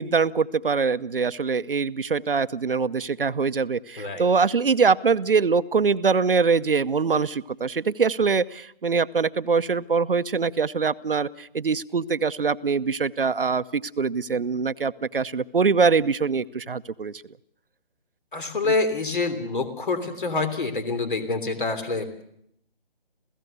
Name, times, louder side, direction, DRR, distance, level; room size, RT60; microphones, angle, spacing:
voice 1, 0.0-17.1, right 5 dB, 65° right, 14 dB, 0.8 m, -23 dB
voice 2, 18.3-22.2, left 3 dB, 55° left, 11 dB, 3.3 m, -26 dB
28.0 x 16.5 x 6.8 m, 0.72 s
figure-of-eight pair, 150°, 30 cm